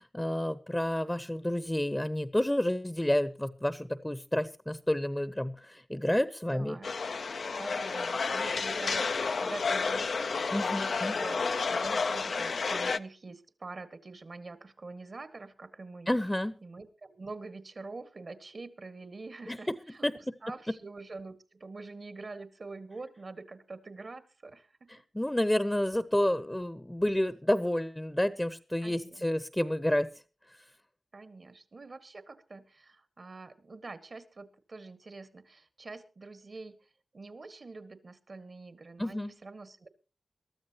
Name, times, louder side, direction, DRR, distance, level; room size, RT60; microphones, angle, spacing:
voice 1, 0.0-6.8 10.5-11.2 16.1-16.5 19.5-19.7 20.0-20.3 24.9-30.1 39.0-39.3, left 1 dB, 10° left, 14 dB, 0.8 m, -30 dB
voice 2, 6.4-6.9 7.5-16.1 16.6-20.1 20.4-24.9 28.8-29.2 31.1-39.9, right 3 dB, 55° right, 11 dB, 1.8 m, -45 dB
sound 1, 6.8-13.0, left 4 dB, 75° left, 0.6 m, -31 dB
22.5 x 13.0 x 3.0 m, 0.34 s
cardioid pair, 55°, 0 cm